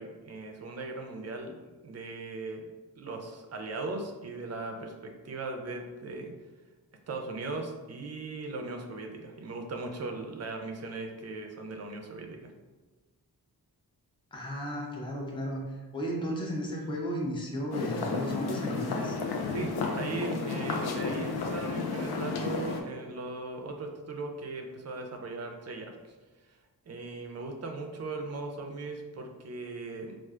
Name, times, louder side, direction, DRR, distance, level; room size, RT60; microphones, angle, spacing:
voice 1, 0.0-6.3 7.1-12.5 19.5-26.1 26.5-26.6 26.9-30.2, right 3 dB, 45° right, 4 dB, 0.4 m, -38 dB
voice 2, 14.3-15.6 15.9-19.2, equal, 15° left, -2 dB, 0.5 m, -34 dB
sound 1, 17.7-22.8, left 4 dB, 80° left, 0.5 m, -32 dB
4.3 x 2.4 x 2.4 m, 1.2 s
wide cardioid pair, 170°, 38 cm